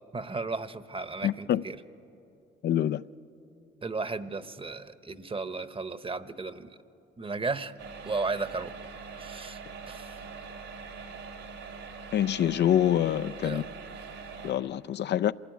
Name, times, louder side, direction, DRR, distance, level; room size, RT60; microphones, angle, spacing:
voice 1, 0.1-1.8 3.8-6.8 7.2-7.8 8.0-8.7 9.2-9.6 9.9-10.2 13.4-13.7, right 3 dB, 25° right, 1.0 m, -34 dB
voice 2, 1.2-1.6 2.6-3.0 12.1-13.6 14.4-15.3, left 11 dB, 55° left, 0.5 m, -26 dB
sound 1, 7.8-14.5, right 5 dB, 85° right, 3.2 m, -43 dB
26.5 x 17.0 x 9.4 m
supercardioid pair, 70°, 21 cm